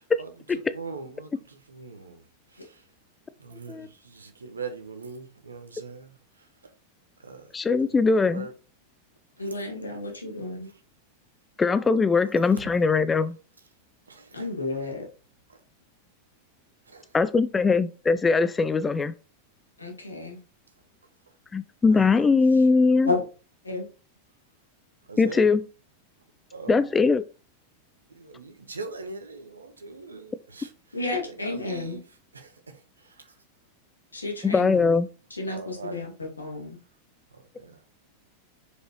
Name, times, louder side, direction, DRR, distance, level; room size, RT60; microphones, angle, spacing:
voice 1, 0.2-2.2 2.5-2.8 3.4-6.5 7.2-7.5 8.0-8.5 9.4-9.6 10.6-10.8 14.1-14.5 15.5-15.6 16.9-17.1 21.9-22.7 25.1-25.4 26.5-26.9 28.1-33.3 35.5-36.0 37.3-37.8, right 4 dB, 75° right, 1.2 m, -42 dB
voice 2, 7.5-8.5 11.6-13.3 17.1-19.1 21.5-23.1 25.2-25.6 26.7-27.2 34.4-35.1, left 4 dB, 15° left, 0.4 m, -21 dB
voice 3, 9.4-10.7 14.3-15.0 19.8-20.4 23.0-23.2 23.6-23.9 30.9-32.0 34.1-34.9 35.4-36.8, left 2 dB, 80° left, 2.3 m, -31 dB
6.4 x 5.3 x 3.1 m
figure-of-eight pair, 90°, 0 cm